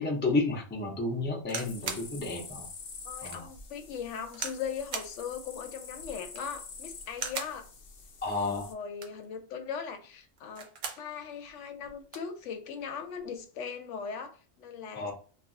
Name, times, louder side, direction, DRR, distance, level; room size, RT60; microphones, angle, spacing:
voice 1, 0.0-2.7 3.2-3.5 8.2-8.7 15.0-15.1, left 2 dB, 15° left, 0.4 m, -31 dB
sound 1, 1.4-2.1 2.7-2.8 3.3-3.4 4.3-4.6 4.9-5.2 6.2-6.6 7.1-7.6 8.8-9.3 10.4-11.1 11.5-11.6 11.8-12.3 13.2-13.4, right 5 dB, 55° right, 0.6 m, -38 dB
sound 2, 1.6-8.7, left 5 dB, 60° left, 0.8 m, -47 dB
voice 2, 3.0-7.7 8.3-10.7 11.0-15.1, left 6 dB, 85° left, 0.9 m, -39 dB
2.4 x 2.2 x 3.6 m
omnidirectional pair, 1.2 m